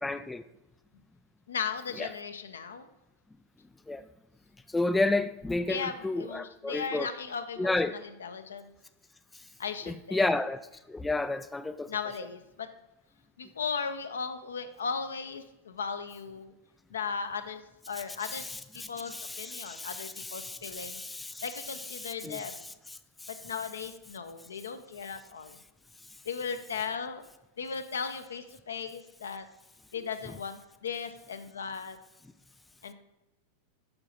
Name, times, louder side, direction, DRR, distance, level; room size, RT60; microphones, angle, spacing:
voice 1, 0.0-0.4 2.0-2.1 3.9-4.0 4.7-7.1 7.6-8.0 9.9-11.9 18.2-21.5 22.0-23.3, left 2 dB, 10° left, 0.3 m, -32 dB
voice 2, 1.5-2.9 5.7-8.7 9.6-10.3 11.9-12.7 13.4-16.5 16.9-18.5 18.7-21.0 21.4-22.7 23.3-25.6 26.2-27.2 27.6-29.4 29.9-32.0 32.8-32.9, left 6 dB, 70° left, 0.8 m, -37 dB
8.1 x 5.7 x 5.4 m
figure-of-eight pair, 90°, 0 cm